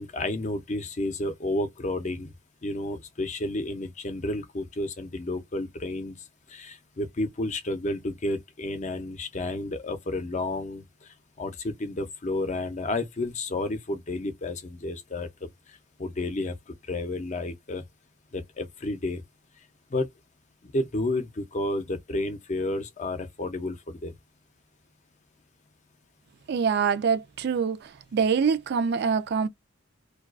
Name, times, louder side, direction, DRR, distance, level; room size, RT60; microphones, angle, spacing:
voice 1, 0.0-2.3 2.6-6.2 6.5-11.1 11.4-15.3 15.7-17.8 18.3-19.2 19.9-20.1 20.7-24.1, left 2 dB, 35° left, 0.5 m, -31 dB
voice 2, 26.5-29.5, right 6 dB, 55° right, 0.3 m, -25 dB
2.3 x 2.3 x 2.3 m
head